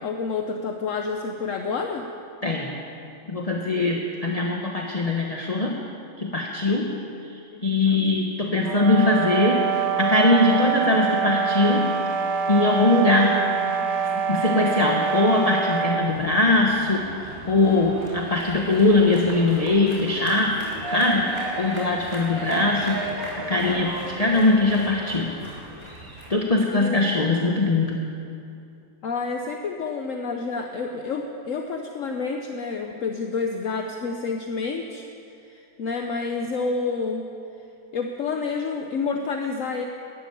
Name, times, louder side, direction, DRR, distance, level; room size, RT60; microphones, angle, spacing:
voice 1, 0.0-2.0 7.5-8.0 26.7-27.0 29.0-35.0 35.5-37.3 37.9-39.8, left 4 dB, 55° left, 3 dB, 0.9 m, -29 dB
voice 2, 2.4-2.7 3.3-5.8 6.2-6.9 7.6-11.9 12.5-13.5 14.3-21.3 21.6-23.0 23.5-25.3 26.3-28.0, left 2 dB, 25° left, 0 dB, 0.8 m, -21 dB
sound 1, 8.6-16.1, right 7 dB, 55° right, 0.8 m, -25 dB
sound 2, 16.0-26.3, right 1 dB, 15° right, 3.4 m, -35 dB
13.0 x 12.0 x 9.2 m, 2.6 s
omnidirectional pair, 2.2 m